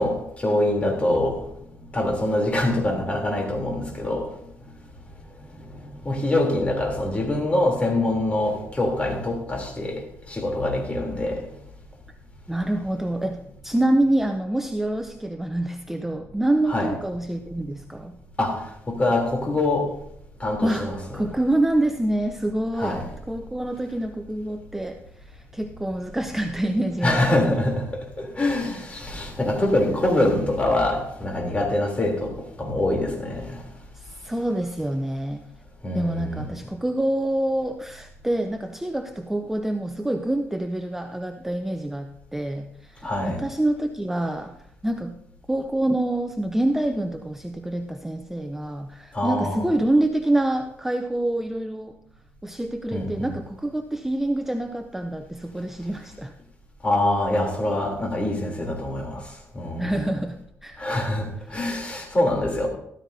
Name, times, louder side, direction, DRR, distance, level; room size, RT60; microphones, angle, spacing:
voice 1, 0.0-1.4 1.9-4.3 5.6-10.0 10.3-11.4 16.7-16.9 18.4-19.9 20.4-21.0 22.8-23.1 27.0-33.6 35.8-36.5 43.0-43.4 49.1-49.6 52.9-53.3 56.8-59.2 59.5-59.9 60.8-62.7, left 1 dB, 25° left, 0 dB, 3.2 m, -24 dB
voice 2, 12.5-18.2 20.6-20.9 21.1-23.0 23.3-27.5 33.9-35.5 35.9-45.2 45.5-52.0 52.4-56.3 59.8-60.9, right 1 dB, 5° right, 6 dB, 0.5 m, -26 dB
14.0 x 14.0 x 2.7 m, 0.73 s
cardioid pair, 125°, 5 cm